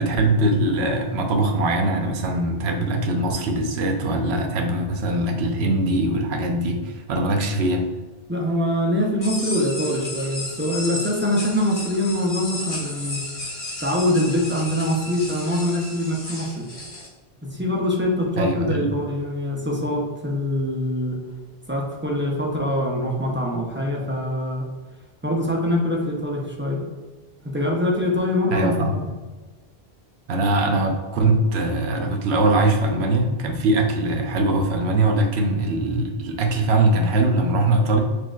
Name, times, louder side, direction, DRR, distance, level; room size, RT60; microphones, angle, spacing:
voice 1, 0.0-7.8 18.4-18.9 28.5-29.0 30.3-38.0, right 2 dB, 75° right, 3 dB, 0.9 m, -21 dB
voice 2, 8.3-13.2 13.8-16.7 17.4-21.2 21.7-24.7 25.2-26.8 27.4-29.1, left 1 dB, 15° right, -2 dB, 0.4 m, -24 dB
sound 1, 9.2-17.1, left 1 dB, 60° left, 1.7 m, -33 dB
6.1 x 2.5 x 2.3 m, 1.3 s
omnidirectional pair, 1.1 m